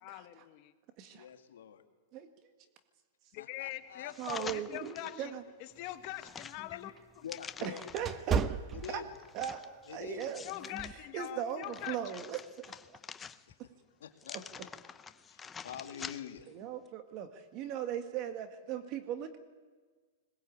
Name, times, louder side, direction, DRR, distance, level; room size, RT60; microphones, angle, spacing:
voice 1, 0.0-0.7 3.3-6.9 10.4-12.0, left 15 dB, 45° left, 10 dB, 1.4 m, -43 dB
voice 2, 1.1-1.8 3.4-4.1 7.2-7.8 8.3-9.1 9.9-10.3 13.5-13.6 14.0-14.4 15.3-16.5, left 8 dB, 80° left, 6 dB, 2.2 m, -45 dB
sound 1, 4.1-5.2 5.7-8.2 8.8-10.9 11.4-13.7 14.2-16.5 16.9-17.0, left 6 dB, 15° left, 0.7 m, -47 dB
voice 3, 4.2-5.4 7.6-8.4 8.9-9.0 9.3-10.5 11.1-13.0 14.3-14.7 16.5-19.4, right 9 dB, 40° right, 8 dB, 1.8 m, -38 dB
sound 2, 5.8-9.5 9.9-10.2 10.8-11.1, right 6 dB, 20° right, 0.8 m, -35 dB
21.0 x 20.0 x 8.7 m, 1.4 s
hypercardioid pair, 140°, 0 cm